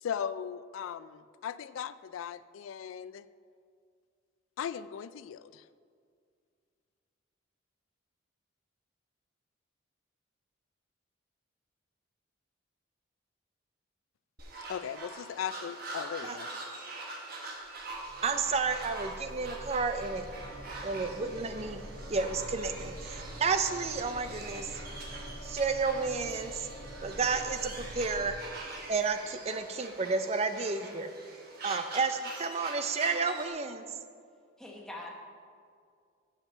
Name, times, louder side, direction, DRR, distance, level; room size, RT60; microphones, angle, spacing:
voice 1, 0.0-3.2 4.6-5.6 14.7-16.5, left 8 dB, 80° left, 16 dB, 0.3 m, -38 dB
sound 1, 14.4-33.5, right 2 dB, 50° right, 1.4 m, -44 dB
sound 2, 17.7-28.4, right 1 dB, 80° right, 0.7 m, -47 dB
voice 2, 18.2-20.2 20.8-24.8 25.4-26.7 27.0-28.4 28.9-31.1 31.6-33.8, right 4 dB, 30° right, 9 dB, 0.5 m, -31 dB
sound 3, 19.9-31.7, left 1 dB, 35° left, 0.8 m, -51 dB
voice 3, 34.6-35.1, left 2 dB, 5° left, -2 dB, 1.1 m, -44 dB
7.4 x 5.8 x 6.8 m, 2.2 s
head